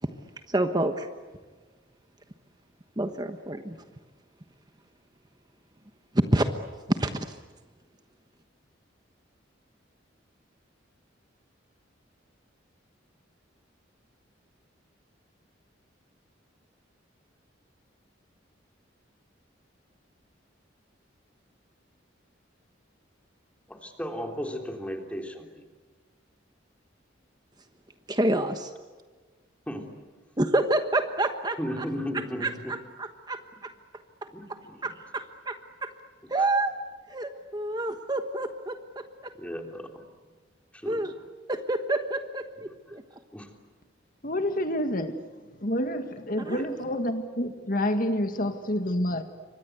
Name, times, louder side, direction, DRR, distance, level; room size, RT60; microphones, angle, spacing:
voice 1, 0.5-1.1 3.0-3.8 6.1-6.5 6.9-7.4 28.1-28.7 30.4-31.8 32.4-33.7 34.8-35.9 36.3-36.8 37.1-39.3 40.8-41.1 41.5-43.0 46.5-46.6, right 1 dB, 20° right, 7 dB, 1.2 m, -28 dB
voice 2, 23.7-25.6 29.7-30.0 31.6-32.7 34.3-34.9 39.4-40.0 40.7-41.0 42.9-43.0 43.3-43.5 46.5-46.7, equal, 5° left, 3 dB, 3.4 m, -35 dB
voice 3, 44.2-49.2, left 1 dB, 45° left, 8 dB, 1.8 m, -28 dB
29.5 x 25.0 x 8.2 m, 1.4 s
head